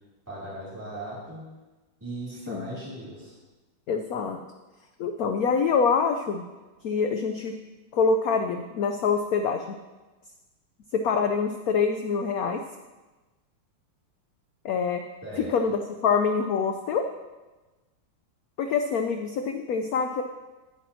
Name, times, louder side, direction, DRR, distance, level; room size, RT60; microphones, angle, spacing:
voice 1, 0.3-1.5 2.0-3.3 15.2-15.5, right 1 dB, 10° right, -11 dB, 2.7 m, -38 dB
voice 2, 3.9-4.4 5.0-6.4 6.8-7.6 7.9-9.8 10.9-12.6 14.6-15.0 15.4-17.1 18.6-20.2, left 5 dB, 80° left, 6 dB, 0.8 m, -25 dB
15.0 x 8.4 x 2.8 m, 1.2 s
omnidirectional pair, 2.2 m